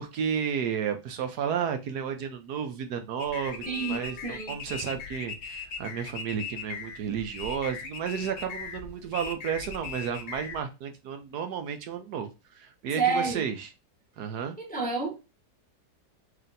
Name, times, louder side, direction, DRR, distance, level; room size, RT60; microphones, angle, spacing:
voice 1, 0.0-12.3 12.5-13.7 14.2-14.6, right 7 dB, 70° right, 1.2 m, -32 dB
sound 1, 3.2-10.6, left 5 dB, 55° left, 0.8 m, -39 dB
voice 2, 3.7-4.6 13.0-13.5 14.6-15.2, right 5 dB, 10° left, 0.6 m, -29 dB
3.2 x 2.9 x 3.8 m
omnidirectional pair, 1.8 m